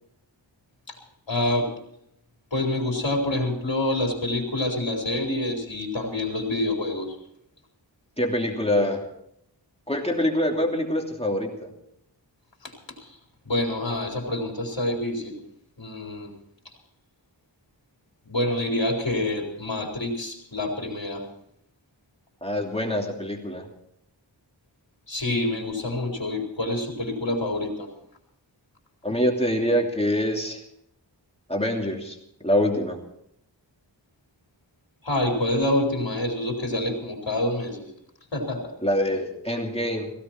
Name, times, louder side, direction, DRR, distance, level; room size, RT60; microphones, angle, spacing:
voice 1, 1.3-1.7 2.5-7.2 12.6-13.2 13.4-15.4 15.8-16.3 18.2-21.3 25.1-27.9 35.0-37.9 38.3-38.7, left 1 dB, 75° left, 1 dB, 4.2 m, -27 dB
voice 2, 8.2-9.1 9.9-11.7 22.4-23.7 29.0-30.6 31.5-33.0 38.8-40.1, equal, 15° left, 1 dB, 2.8 m, -25 dB
17.0 x 16.5 x 4.5 m, 0.73 s
wide cardioid pair, 45°, 44 cm